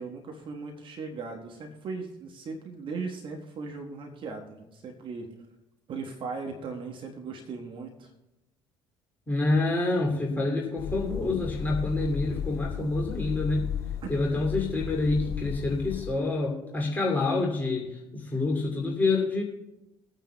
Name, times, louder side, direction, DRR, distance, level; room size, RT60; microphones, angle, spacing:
voice 1, 0.0-5.3 5.9-8.1 14.3-14.4, right 4 dB, 45° right, 2 dB, 1.3 m, -38 dB
voice 2, 9.3-13.7 14.1-19.4, left 2 dB, 15° left, -2 dB, 2.5 m, -27 dB
sound 1, 10.8-16.1, left 8 dB, 30° left, 1.9 m, -35 dB
23.0 x 9.0 x 2.2 m, 0.96 s
figure-of-eight pair, 55°, 12 cm